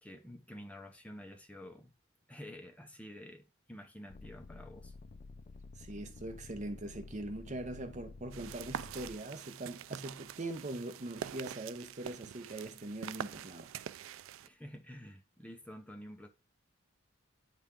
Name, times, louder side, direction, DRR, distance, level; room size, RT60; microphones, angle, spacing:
voice 1, 0.0-1.9 2.3-4.9 14.4-16.3, equal, 5° left, 0.7 m, -49 dB
sound 1, 4.1-9.2 9.9-10.6, left 3 dB, 35° left, 0.4 m, -51 dB
voice 2, 5.8-13.7, right 2 dB, 35° right, 0.8 m, -42 dB
sound 2, 8.3-14.5, right 9 dB, 75° right, 0.3 m, -45 dB
9.9 x 3.5 x 3.7 m
head